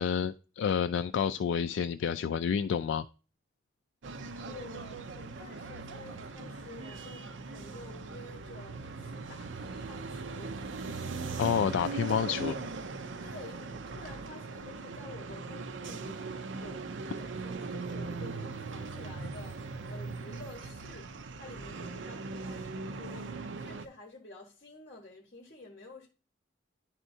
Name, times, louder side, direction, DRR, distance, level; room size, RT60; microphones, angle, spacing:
voice 1, 0.0-3.0 11.4-12.5, left 7 dB, 80° left, 0.3 m, -29 dB
sound 1, 4.0-23.9, right 3 dB, 85° right, 0.6 m, -40 dB
voice 2, 4.4-10.6 12.3-12.6 13.2-16.9 17.2-21.1 21.4-26.1, left 2 dB, 45° left, 1.2 m, -50 dB
11.0 x 4.3 x 2.7 m
head